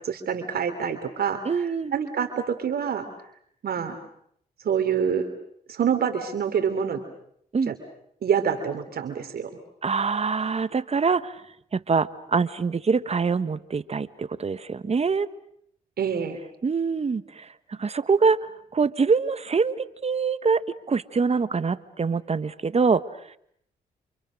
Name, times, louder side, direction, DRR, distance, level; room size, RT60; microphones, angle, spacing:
voice 1, 0.1-1.4 1.9-3.1 3.6-4.0 4.6-5.3 5.7-7.0 7.7-7.8 8.2-9.5 16.0-16.4, right 7 dB, 70° right, 7 dB, 3.2 m, -26 dB
voice 2, 1.4-1.9 7.5-7.7 9.8-11.4 11.7-15.3 16.6-18.4 18.7-20.6 20.9-23.0, right 5 dB, 40° right, 14 dB, 1.3 m, -24 dB
29.0 x 28.5 x 6.5 m, 0.69 s
cardioid pair, 70°, 17 cm